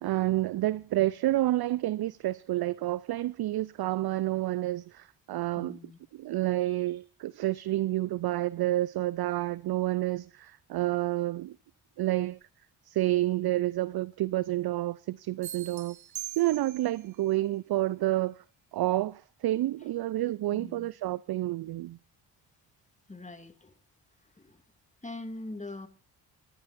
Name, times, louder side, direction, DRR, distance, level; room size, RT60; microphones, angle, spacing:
voice 1, 0.0-5.8 6.1-11.6 12.0-12.4 12.9-16.0 16.4-18.4 18.7-22.0, right 15 dB, 50° right, 0.6 m, -29 dB
voice 2, 5.6-6.0 20.5-20.9 23.1-23.8 24.2-24.6 25.0-25.9, left 2 dB, 15° left, 2.4 m, -42 dB
sound 1, 15.4-17.1, right 13 dB, 65° right, 1.7 m, -41 dB
25.0 x 11.5 x 2.6 m
hypercardioid pair, 40°, 48 cm